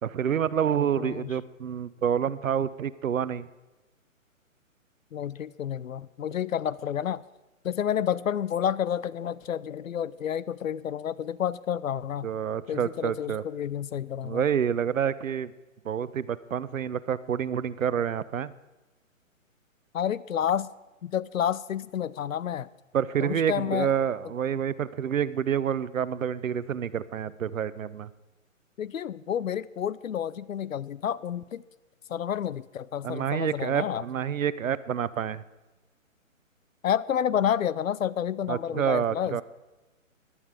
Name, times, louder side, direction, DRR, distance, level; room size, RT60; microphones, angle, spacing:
voice 1, 0.0-3.5 12.2-13.4 14.2-15.5 15.8-18.5 22.9-28.1 33.0-35.4 38.5-39.4, right 8 dB, 70° right, 17 dB, 0.8 m, -28 dB
voice 2, 1.0-1.3 5.1-7.2 7.6-12.3 12.7-14.4 19.9-20.7 21.0-22.7 23.2-23.9 28.8-31.6 32.1-34.0 36.8-39.4, left 9 dB, 75° left, 19 dB, 0.7 m, -30 dB
17.0 x 11.5 x 5.0 m, 1.1 s
hypercardioid pair, 150°, 41 cm